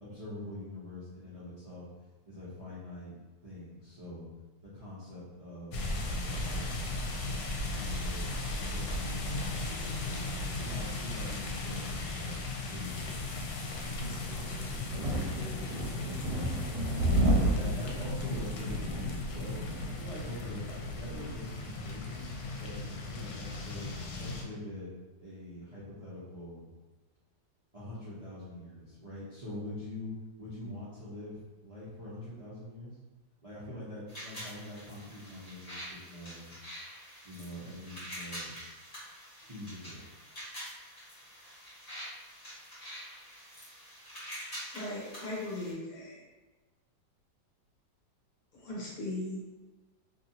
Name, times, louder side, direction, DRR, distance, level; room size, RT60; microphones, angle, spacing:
voice 1, 0.0-1.9 2.3-3.2 3.4-4.3 4.6-6.7 7.6-8.3 8.7-10.2 10.6-12.4 12.7-13.4 15.6-16.3 17.0-19.6 19.9-23.9 24.2-24.9 25.2-26.7 27.7-33.0 33.4-36.5 37.2-38.5 39.0-39.2 39.4-40.0, left 1 dB, 55° right, -11 dB, 0.4 m, -44 dB
sound 1, 5.7-24.4, left 2 dB, 80° left, 1.2 m, -37 dB
sound 2, 13.8-21.3, right 1 dB, 75° right, 1.1 m, -32 dB
sound 3, 34.1-45.7, equal, 35° left, 1.4 m, -46 dB
voice 2, 44.7-46.2 48.5-49.6, left 1 dB, 60° left, -6 dB, 1.1 m, -39 dB
2.9 x 2.7 x 2.7 m, 1.2 s
omnidirectional pair, 1.9 m